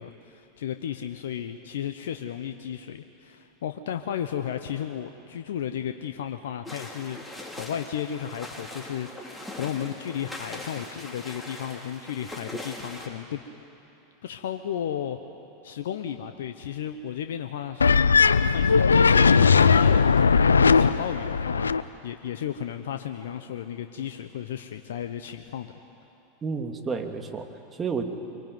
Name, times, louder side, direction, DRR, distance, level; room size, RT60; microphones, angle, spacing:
voice 1, 0.0-13.4 14.2-15.2 15.6-25.7, left 9 dB, 70° left, 8 dB, 1.0 m, -34 dB
sound 1, 6.6-13.1, left 1 dB, 5° left, 5.3 m, -40 dB
sound 2, 17.8-21.8, left 5 dB, 90° left, 0.6 m, -18 dB
voice 2, 26.4-28.0, right 5 dB, 25° right, 4 dB, 2.7 m, -31 dB
25.0 x 23.5 x 9.5 m, 2.9 s
hypercardioid pair, 90°, 0 cm